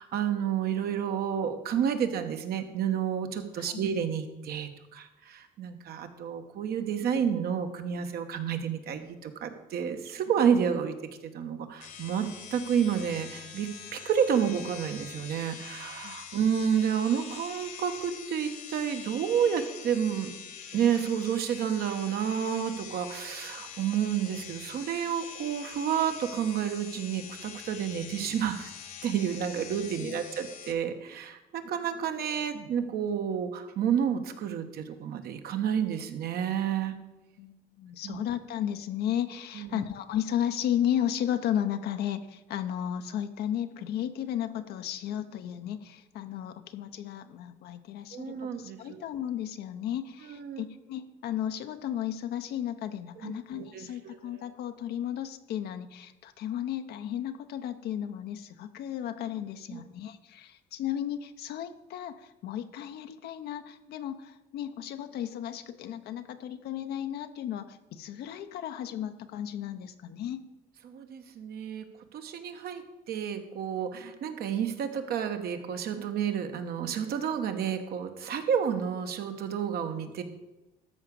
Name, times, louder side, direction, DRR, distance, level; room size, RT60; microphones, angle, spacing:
voice 1, 0.0-10.9 11.2-20.3 20.7-28.7 29.0-37.0 38.0-38.2 39.5-39.8 48.1-49.0 50.3-50.6 53.2-54.4 59.7-59.8 70.8-71.8 72.1-80.2, right 8 dB, 65° right, 7 dB, 1.2 m, -30 dB
sound 1, 11.8-30.7, left 7 dB, 50° left, 1.3 m, -44 dB
voice 2, 37.4-70.5, left 10 dB, 70° left, 9 dB, 0.8 m, -34 dB
13.0 x 4.9 x 7.0 m, 1.0 s
cardioid pair, 110°, 17 cm